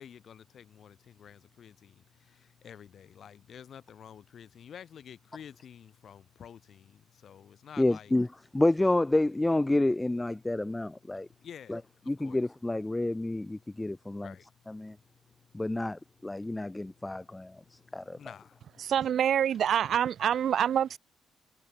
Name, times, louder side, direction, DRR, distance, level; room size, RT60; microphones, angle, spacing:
voice 1, 0.0-8.1 11.3-12.4 14.2-14.8 15.4-15.5 16.4-16.6 17.1-18.8, left 8 dB, 60° left, 2.1 m, -51 dB
voice 2, 7.8-8.3 8.5-11.3 11.7-11.8 12.1-14.3 14.7-15.0 15.5-18.2, left 2 dB, 15° left, 0.3 m, -29 dB
voice 3, 18.8-21.0, right 9 dB, 65° right, 1.8 m, -26 dB
cardioid pair, 90°, 0 cm